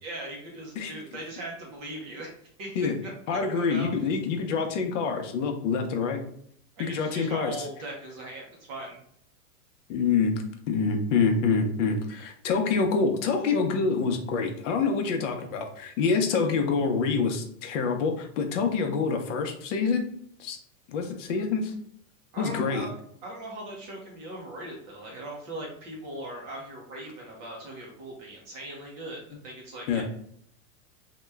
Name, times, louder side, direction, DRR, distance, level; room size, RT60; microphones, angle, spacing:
voice 1, 0.0-4.1 6.8-9.0 22.3-22.9 23.2-30.0, right 1 dB, 25° right, -2 dB, 0.5 m, -39 dB
voice 2, 3.3-6.3 6.8-7.6 9.9-10.3 10.7-20.0 20.4-20.6 20.9-21.7 22.4-22.9 29.9-30.0, left 5 dB, 55° left, 4 dB, 0.7 m, -26 dB
2.9 x 2.2 x 3.3 m, 0.66 s
supercardioid pair, 150°, 46 cm